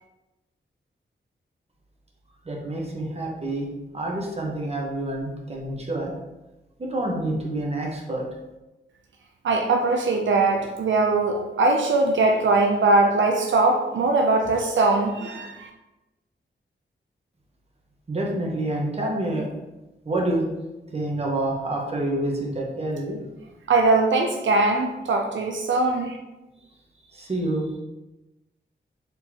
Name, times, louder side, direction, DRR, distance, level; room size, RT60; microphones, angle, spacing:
voice 1, 2.4-3.7 3.9-6.1 6.8-8.3 18.1-19.5 20.0-20.5 20.9-23.2 27.1-27.7, right 1 dB, 35° right, -1 dB, 1.1 m, -27 dB
voice 2, 9.4-15.7 23.7-26.2, right 3 dB, 80° right, 3 dB, 0.5 m, -21 dB
4.2 x 3.9 x 2.9 m, 1.0 s
wide cardioid pair, 95°, 19 cm